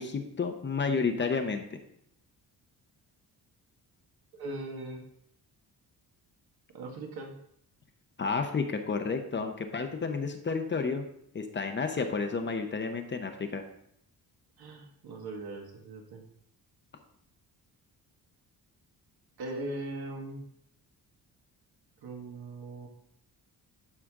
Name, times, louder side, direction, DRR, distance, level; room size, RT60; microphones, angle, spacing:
voice 1, 0.0-1.6 8.2-11.0 11.3-13.6, left 4 dB, 30° left, 6 dB, 0.8 m, -31 dB
voice 2, 4.3-5.0 6.7-7.4 14.6-16.3 19.4-20.5 22.0-22.9, right 2 dB, 70° right, 2 dB, 1.7 m, -40 dB
12.0 x 5.0 x 3.7 m, 0.73 s
cardioid pair, 135°, 39 cm